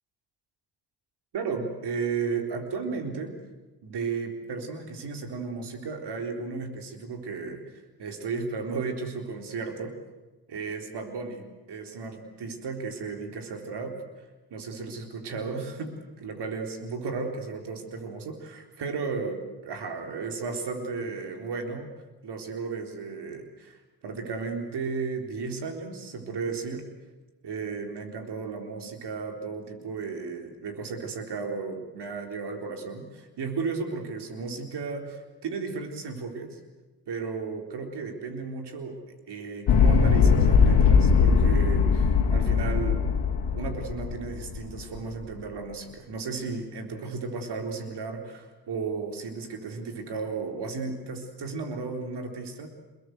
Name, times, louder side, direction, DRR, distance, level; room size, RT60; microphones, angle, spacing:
voice 1, 1.3-3.4 3.8-9.9 10.5-14.0 14.5-21.9 22.2-26.9 27.4-36.6 37.1-39.0 39.3-43.1 43.6-52.7, right 4 dB, 65° right, 4 dB, 4.0 m, -34 dB
sound 1, 39.7-44.9, left 5 dB, 70° left, 2.7 m, -20 dB
24.0 x 21.5 x 8.0 m, 1.2 s
supercardioid pair, 55°, 43 cm